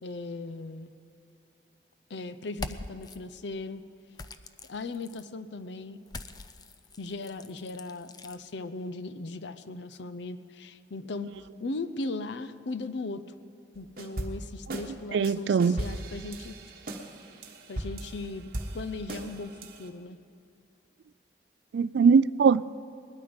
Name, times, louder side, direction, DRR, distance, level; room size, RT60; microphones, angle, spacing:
voice 1, 0.0-0.9 2.1-3.8 4.7-6.0 7.0-11.3 11.6-13.2 13.8-16.6 17.7-18.5 18.7-20.2, left 3 dB, 70° left, 0.6 m, -38 dB
sound 1, 2.5-3.2 4.1-5.3 6.1-8.4, left 3 dB, 20° left, 0.4 m, -43 dB
sound 2, 13.8-14.9 15.2-19.9, right 1 dB, 50° right, 1.3 m, -38 dB
voice 2, 15.1-15.8 21.7-22.7, right 5 dB, 70° right, 0.3 m, -21 dB
20.0 x 12.5 x 5.2 m
head